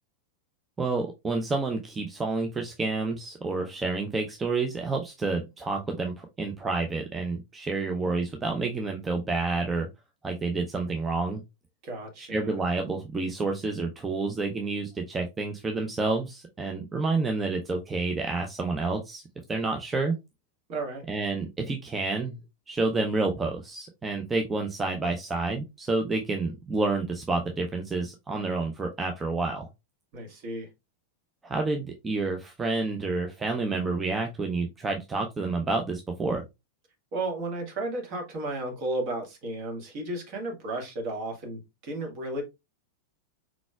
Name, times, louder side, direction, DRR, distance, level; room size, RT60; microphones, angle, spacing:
voice 1, 0.8-9.9 10.2-11.4 12.2-19.2 19.5-20.2 21.1-22.4 22.7-29.7 31.4-36.4, right 3 dB, 15° right, 0.6 m, -29 dB
voice 2, 11.8-12.6 20.7-21.0 30.1-30.7 37.1-42.4, right 2 dB, 40° right, 1.6 m, -33 dB
4.6 x 4.0 x 2.3 m
figure-of-eight pair, 90°, 0 cm